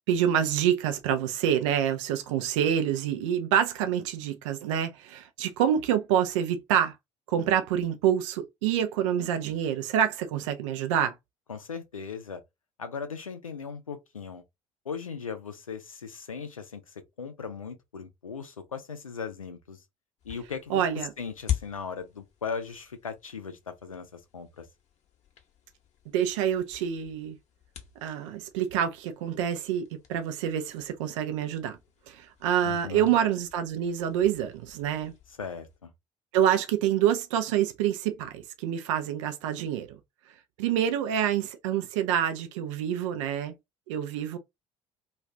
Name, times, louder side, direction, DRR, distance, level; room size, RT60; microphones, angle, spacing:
voice 1, 0.1-6.9 7.3-11.1 20.7-21.1 26.1-27.4 28.0-31.8 32.1-35.1 36.3-39.9 40.6-43.5 43.9-44.4, right 9 dB, 70° right, 0.5 m, -27 dB
voice 2, 11.5-12.4 12.8-14.4 14.9-19.8 20.2-24.7 32.6-33.1 35.4-35.9, left 6 dB, 90° left, 0.5 m, -38 dB
sound 1, 20.2-35.8, left 11 dB, 40° left, 0.9 m, -43 dB
2.4 x 2.4 x 3.2 m
figure-of-eight pair, 55°, 17 cm